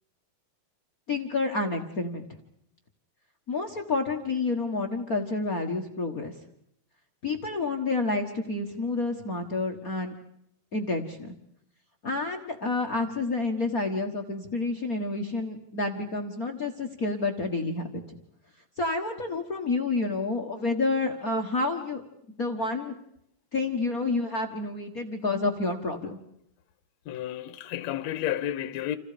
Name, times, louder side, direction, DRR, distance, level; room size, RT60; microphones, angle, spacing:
voice 1, 1.1-2.3 3.5-6.3 7.2-10.1 10.7-11.3 12.0-18.2 18.8-22.0 22.4-22.9 23.5-26.2, left 3 dB, 45° left, 1.1 m, -29 dB
voice 2, 27.1-29.0, left 12 dB, 65° left, 2.0 m, -31 dB
29.0 x 28.0 x 5.1 m
omnidirectional pair, 4.0 m